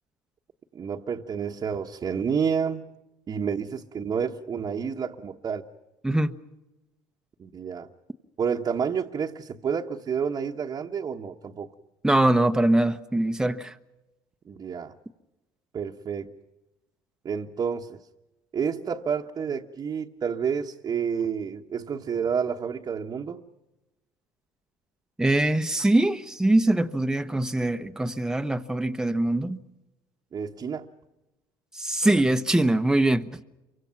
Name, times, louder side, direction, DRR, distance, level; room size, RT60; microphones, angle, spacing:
voice 1, 0.7-2.9 3.3-5.6 7.4-7.9 8.4-11.7 14.5-14.9 15.7-16.3 17.2-18.0 18.5-23.4 30.3-30.9, right 6 dB, 40° right, 1.3 m, -29 dB
voice 2, 12.0-13.7 25.2-29.6 31.7-33.4, right 1 dB, 5° right, 1.1 m, -23 dB
28.5 x 24.5 x 5.9 m
supercardioid pair, 90°, 10 cm